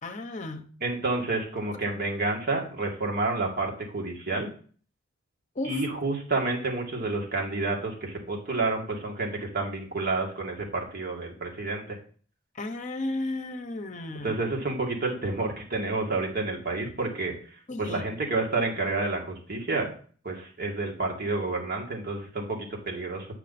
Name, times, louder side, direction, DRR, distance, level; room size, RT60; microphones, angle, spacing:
voice 1, 0.0-0.7 5.6-5.8 12.6-14.4 17.7-18.0, left 2 dB, 40° left, 7 dB, 0.9 m, -34 dB
voice 2, 0.8-4.5 5.6-12.0 14.2-17.3 17.8-19.9 20.2-23.3, right 3 dB, 50° right, 0 dB, 2.4 m, -29 dB
8.8 x 5.9 x 4.2 m, 0.43 s
head